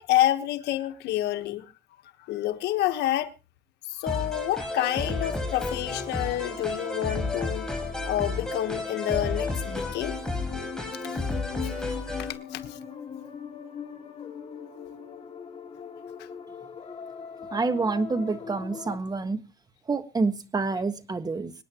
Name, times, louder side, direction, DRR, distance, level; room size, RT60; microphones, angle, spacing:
voice 1, 0.0-1.7 2.2-3.3 3.8-7.7 8.0-10.1 11.0-11.2 11.6-12.8 16.2-16.3, left 13 dB, 80° left, 1.3 m, -28 dB
sound 1, 4.1-12.3, left 2 dB, 5° left, 4.8 m, -32 dB
sound 2, 4.4-19.0, left 6 dB, 35° left, 3.2 m, -40 dB
voice 2, 17.5-19.4 19.9-21.5, right 3 dB, 25° right, 1.5 m, -27 dB
25.5 x 9.6 x 3.0 m
cardioid pair, 110°, 17 cm